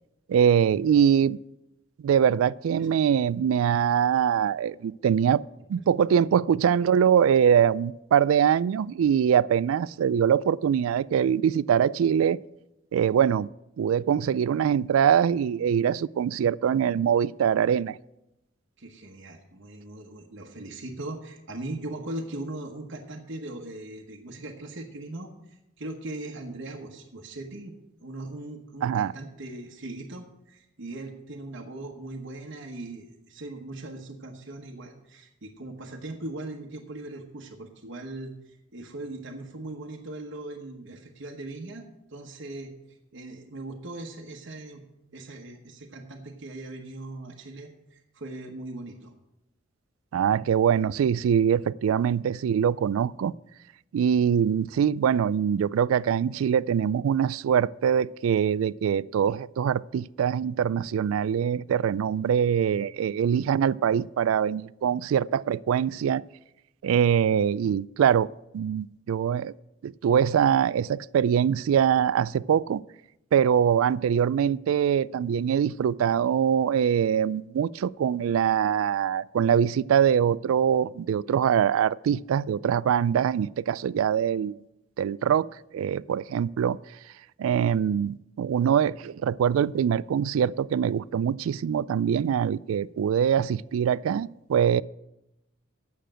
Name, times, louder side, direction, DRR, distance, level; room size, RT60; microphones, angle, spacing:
voice 1, 0.3-1.4 2.0-5.4 5.7-12.4 12.9-13.5 13.8-18.0 28.8-29.1 50.1-53.3 53.9-66.2 66.8-69.5 69.8-72.8 73.3-84.6 85.0-85.5 85.7-86.8 87.4-94.8, right 8 dB, 85° right, 0.3 m, -23 dB
voice 2, 18.8-27.7 28.0-42.7 43.1-44.8 45.1-49.1, right 2 dB, 65° right, 1.1 m, -39 dB
9.0 x 6.7 x 7.5 m
head